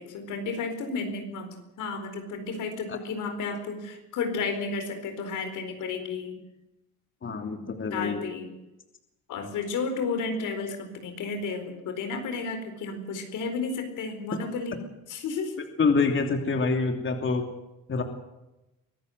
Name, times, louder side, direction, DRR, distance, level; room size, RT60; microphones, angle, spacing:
voice 1, 0.0-6.4 7.9-8.5 9.3-14.8 15.1-15.6, left 4 dB, 80° left, 6 dB, 4.4 m, -32 dB
voice 2, 7.2-8.2 15.8-17.4 17.9-18.0, left 4 dB, 40° left, 5 dB, 3.0 m, -26 dB
24.0 x 15.0 x 7.9 m, 0.96 s
cardioid pair, 90°, 30 cm